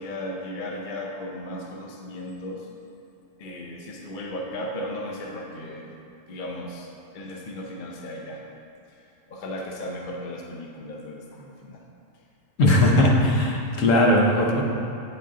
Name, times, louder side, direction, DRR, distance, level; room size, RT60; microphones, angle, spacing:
voice 1, 0.0-2.7 3.4-5.9 6.3-6.9 7.1-8.4 9.3-11.8, left 1 dB, 45° left, 0 dB, 0.7 m, -35 dB
voice 2, 12.6-14.6, left 1 dB, 80° left, -1 dB, 1.2 m, -19 dB
8.3 x 4.2 x 3.7 m, 2.7 s
omnidirectional pair, 1.3 m